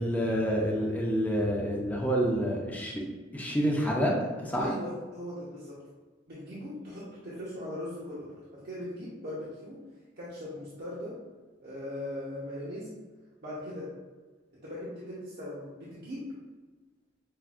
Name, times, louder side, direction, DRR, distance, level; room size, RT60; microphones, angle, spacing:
voice 1, 0.0-2.9 3.3-4.1 4.4-4.7, equal, 10° left, -2 dB, 0.5 m, -28 dB
voice 2, 4.6-5.8 6.3-8.3 8.5-9.8 10.2-11.1 11.6-12.9 13.4-13.9 14.6-16.3, left 1 dB, 55° right, -8 dB, 0.8 m, -39 dB
5.5 x 2.5 x 2.4 m, 1.3 s
head